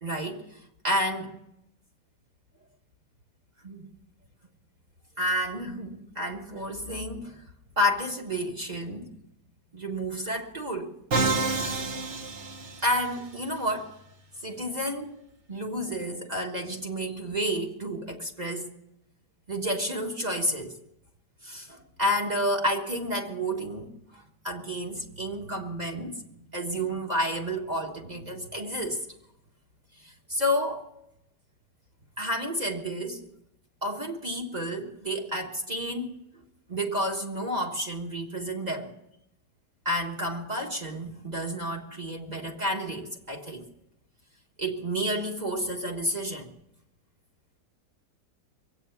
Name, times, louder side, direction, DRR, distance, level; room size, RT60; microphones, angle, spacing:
voice 1, 0.0-1.4 3.6-3.9 5.2-7.4 7.8-9.1 9.7-10.9 11.6-11.9 12.8-14.0 14.4-15.2 15.5-18.7 19.5-20.8 21.4-26.2 26.5-29.1 30.0-30.9 32.2-33.3 33.8-36.3 36.7-38.9 39.8-43.7 44.6-46.5, equal, 25° right, 1.4 m, -30 dB
Musical instrument, 11.1-13.2, right 3 dB, 50° right, 1.2 m, -28 dB
22.0 x 8.7 x 7.0 m
omnidirectional pair, 1.8 m